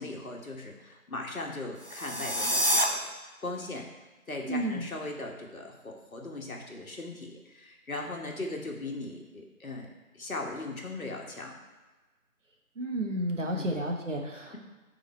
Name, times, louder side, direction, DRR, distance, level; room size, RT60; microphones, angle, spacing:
voice 1, 0.0-3.1 3.4-3.8 4.3-11.6 13.4-13.7, left 2 dB, 70° left, 1 dB, 1.6 m, -39 dB
sound 1, 1.8-2.9, equal, 40° right, 0.6 m, -27 dB
voice 2, 4.5-4.9 12.8-14.6, right 1 dB, 60° right, 1 dB, 1.4 m, -31 dB
9.5 x 3.8 x 4.3 m, 1.2 s
figure-of-eight pair, 175°, 43 cm